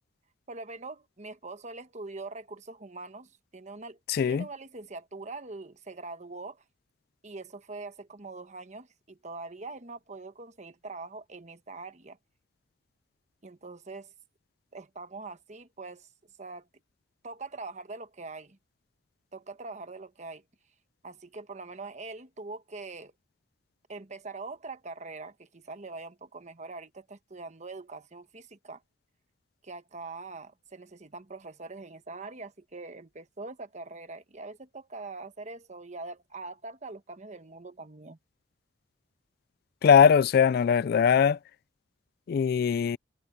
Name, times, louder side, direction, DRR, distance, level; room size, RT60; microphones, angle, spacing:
voice 1, 0.5-4.0 4.3-6.6 7.2-12.2 13.4-14.1 14.7-16.1 16.4-16.7 17.2-18.6 19.3-20.4 21.0-23.1 23.9-28.8 29.6-38.2, right 3 dB, 40° right, 1.2 m, -43 dB
voice 2, 39.8-41.4 42.3-43.0, left 7 dB, 55° left, 0.3 m, -21 dB
head